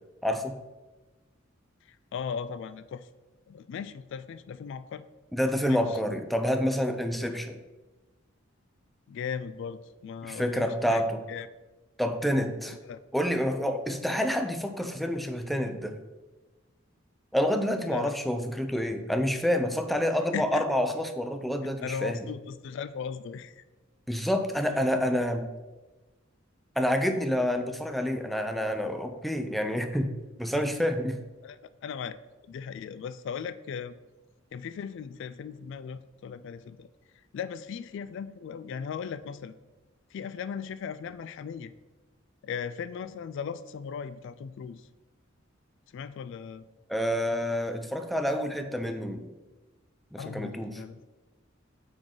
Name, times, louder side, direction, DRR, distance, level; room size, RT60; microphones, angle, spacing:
voice 1, 0.2-0.6 5.3-7.6 10.2-11.2 12.0-12.8 13.1-16.0 17.3-22.3 24.1-25.5 26.8-30.1 30.4-31.2 46.9-49.3 50.1-50.8, equal, ahead, 6 dB, 0.4 m, -28 dB
voice 2, 1.9-3.1 3.5-5.1 5.6-5.9 9.1-11.0 11.3-11.5 12.9-13.0 17.9-18.1 20.3-20.7 21.8-23.6 31.4-31.6 31.8-32.2 32.5-33.9 34.5-36.9 37.3-39.5 40.1-41.7 42.4-44.9 45.9-46.6 50.2-51.0, left 6 dB, 65° left, 14 dB, 0.3 m, -37 dB
9.0 x 3.9 x 3.8 m, 1.1 s
head